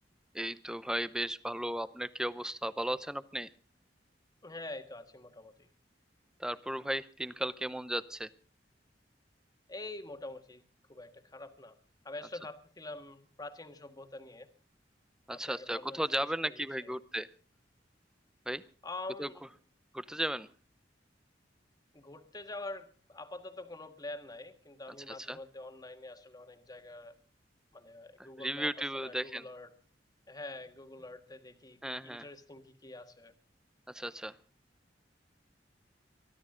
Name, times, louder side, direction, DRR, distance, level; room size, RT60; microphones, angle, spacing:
voice 1, 0.3-3.5 6.4-8.3 15.3-17.3 18.5-18.6 19.2-19.3 19.9-20.5 25.1-25.4 28.4-29.5 31.8-32.3 33.9-34.4, right 1 dB, 5° right, 15 dB, 0.7 m, -35 dB
voice 2, 4.4-5.7 9.7-10.6 10.9-11.8 12.0-14.5 15.3-17.0 18.8-19.5 21.9-27.1 27.7-29.7 30.3-33.3, left 2 dB, 20° left, 7 dB, 1.6 m, -46 dB
23.0 x 13.5 x 3.8 m, 0.35 s
head